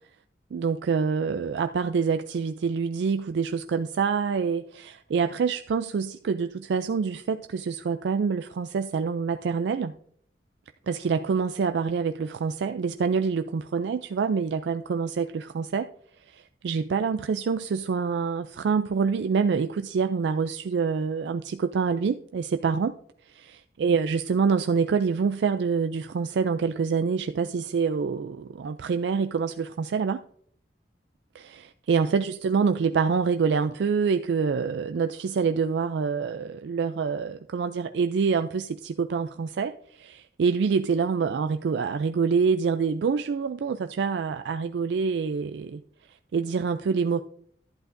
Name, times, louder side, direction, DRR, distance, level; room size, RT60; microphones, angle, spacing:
voice 1, 0.5-9.9 10.9-15.9 16.3-22.9 23.3-30.2 31.3-45.8 46.3-47.2, right 5 dB, 80° right, 9 dB, 0.3 m, -26 dB
11.5 x 10.0 x 2.6 m, 0.63 s
head